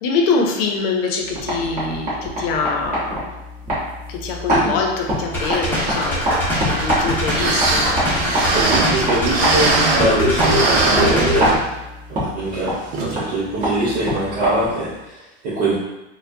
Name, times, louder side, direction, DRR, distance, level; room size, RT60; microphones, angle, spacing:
voice 1, 0.0-3.3 4.1-7.9 10.0-10.2, left 4 dB, 60° left, 2 dB, 0.7 m, -24 dB
sound 1, 1.2-14.9, equal, 25° right, 1.4 m, -26 dB
sound 2, 5.3-11.6, equal, 5° left, 0.9 m, -22 dB
sound 3, 7.0-7.1 7.3-10.1 10.4-11.8 12.2-12.3 12.9-13.2 13.6-13.7, right 3 dB, 70° right, 0.8 m, -21 dB
voice 2, 8.3-11.6 12.1-15.7, right 2 dB, 50° right, -9 dB, 1.3 m, -23 dB
4.3 x 2.3 x 2.7 m, 0.96 s
supercardioid pair, 150°, 32 cm